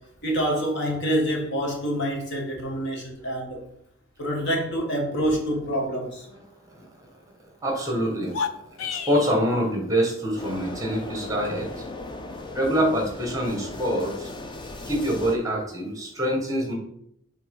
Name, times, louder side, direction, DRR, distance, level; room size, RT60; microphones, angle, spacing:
voice 1, 0.2-3.6 4.2-6.3, equal, 55° left, -1 dB, 1.9 m, -26 dB
voice 2, 7.6-8.4 8.8-11.8 12.5-14.3 14.9-16.7, equal, 15° right, 1 dB, 1.7 m, -25 dB
sound 1, 8.2-9.4, left 6 dB, 80° left, 0.6 m, -31 dB
sound 2, 10.4-15.4, left 2 dB, 20° left, 0.6 m, -37 dB
7.4 x 3.9 x 5.5 m, 0.73 s
head